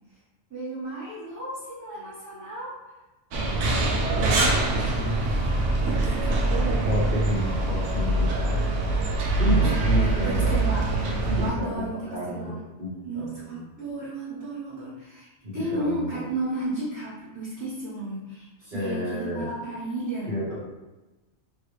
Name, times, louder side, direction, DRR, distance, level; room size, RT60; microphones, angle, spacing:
voice 1, 0.5-2.7 3.7-5.5 5.8-7.1 9.4-10.9 11.3-12.6 13.0-20.4, right 2 dB, 15° right, -13 dB, 1.1 m, -34 dB
sound 1, 3.3-11.5, right 2 dB, 85° right, 0.9 m, -24 dB
voice 2, 6.9-8.6 9.4-10.6 11.3-12.5 12.8-13.6 15.4-16.2 18.7-19.5 20.3-20.6, left 1 dB, 45° right, -6 dB, 1.1 m, -31 dB
3.0 x 2.7 x 3.1 m, 1.1 s
omnidirectional pair, 1.2 m